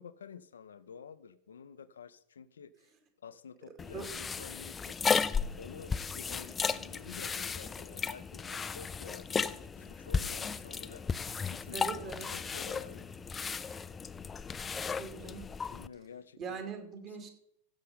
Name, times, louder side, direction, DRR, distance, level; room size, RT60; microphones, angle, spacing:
voice 1, 0.0-2.9 3.2-5.3 5.6-11.0 11.4-11.9 12.3-13.1 15.3-15.4 15.7-16.6 17.0-17.3, left 6 dB, 70° left, 14 dB, 0.6 m, -50 dB
sound 1, 3.8-15.9, left 5 dB, 15° left, 0.4 m, -35 dB
sound 2, 8.5-14.7, left 2 dB, 85° right, 1.5 m, -62 dB
voice 2, 11.7-12.3 15.0-15.5 16.4-17.3, right 5 dB, 35° right, 5 dB, 2.4 m, -41 dB
15.5 x 6.6 x 5.5 m, 0.70 s
figure-of-eight pair, 90°, 0 cm